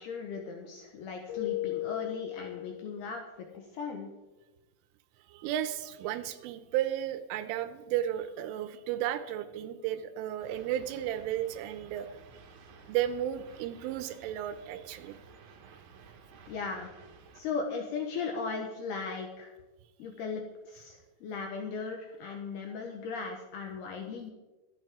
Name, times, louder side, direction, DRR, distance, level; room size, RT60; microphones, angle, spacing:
voice 1, 0.0-4.1 16.5-16.9 17.4-19.5 20.0-24.3, left 5 dB, 70° left, 2 dB, 2.6 m, -37 dB
Keyboard (musical), 1.3-3.3, left 16 dB, 30° left, 5.4 m, -36 dB
voice 2, 5.3-12.1 12.9-15.2, right 11 dB, 85° right, 11 dB, 3.2 m, -33 dB
sound 1, 10.4-17.4, right 5 dB, 60° right, 2.6 m, -54 dB
24.5 x 8.7 x 3.6 m, 1.1 s
omnidirectional pair, 5.7 m